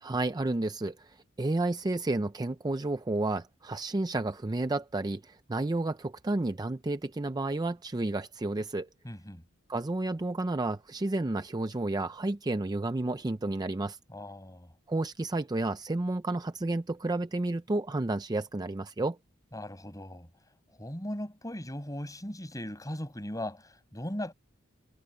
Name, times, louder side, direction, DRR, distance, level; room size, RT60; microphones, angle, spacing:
voice 1, 0.0-8.9 9.7-14.0 14.9-19.2, right 2 dB, 20° right, 0.5 m, -31 dB
voice 2, 9.0-9.4 14.1-14.7 19.5-20.3 20.8-24.3, left 1 dB, 15° left, 6.4 m, -38 dB
head